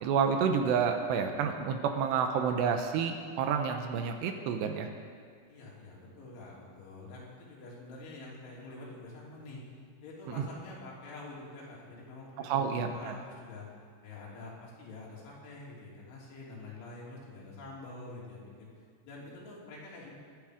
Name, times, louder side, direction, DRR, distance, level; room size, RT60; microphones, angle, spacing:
voice 1, 0.0-4.9 10.4-10.5 12.4-13.1, right 6 dB, 75° right, 5 dB, 2.8 m, -29 dB
voice 2, 5.5-9.8 10.0-13.7 14.0-18.7 19.0-20.2, left 2 dB, 80° left, -4 dB, 5.3 m, -47 dB
24.5 x 9.5 x 5.0 m, 2.1 s
omnidirectional pair, 5.4 m